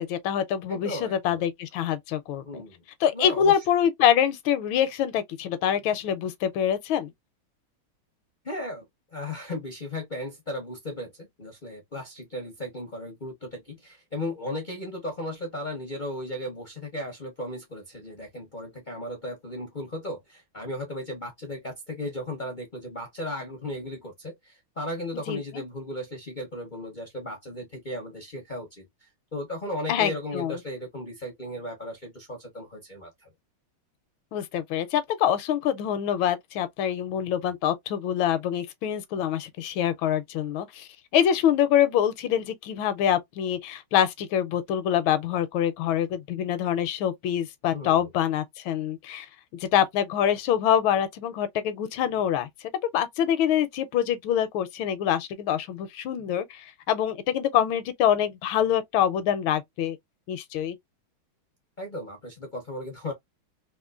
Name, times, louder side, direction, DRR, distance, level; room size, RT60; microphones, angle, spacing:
voice 1, 0.0-2.6 3.0-7.1 25.3-25.6 29.9-30.6 34.3-52.5 52.9-60.0 60.3-60.8, left 10 dB, 80° left, 1.3 m, -25 dB
voice 2, 0.7-1.4 2.4-2.8 3.1-3.6 8.4-8.8 9.1-33.3 47.7-48.1 61.8-63.1, left 1 dB, 55° left, 0.5 m, -36 dB
3.6 x 2.7 x 2.3 m
omnidirectional pair, 2.2 m